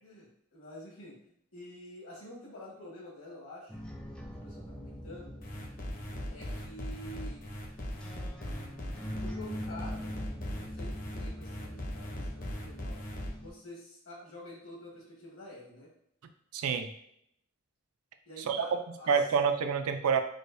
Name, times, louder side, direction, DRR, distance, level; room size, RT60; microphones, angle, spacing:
voice 1, 0.0-3.8 4.3-5.3 6.2-7.4 9.2-10.2 10.6-13.0 13.4-15.9 18.2-19.2, left 1 dB, 70° left, -4 dB, 1.5 m, -48 dB
sound 1, 3.7-13.5, equal, 5° left, 0.3 m, -43 dB
sound 2, 5.4-13.3, equal, 40° left, 0.6 m, -39 dB
voice 2, 16.5-16.9 18.4-18.7 19.1-20.2, right 6 dB, 90° right, 7 dB, 0.4 m, -27 dB
4.9 x 2.2 x 2.6 m, 0.72 s
head